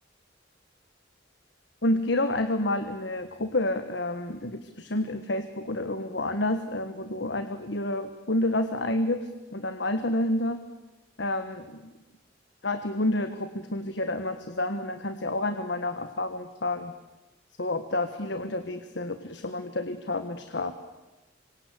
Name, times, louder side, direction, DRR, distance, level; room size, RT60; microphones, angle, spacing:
voice 1, 1.8-10.6 11.2-11.9 12.6-16.9 17.6-20.7, left 1 dB, 60° left, 9 dB, 1.4 m, -29 dB
27.0 x 24.5 x 8.3 m, 1.1 s
head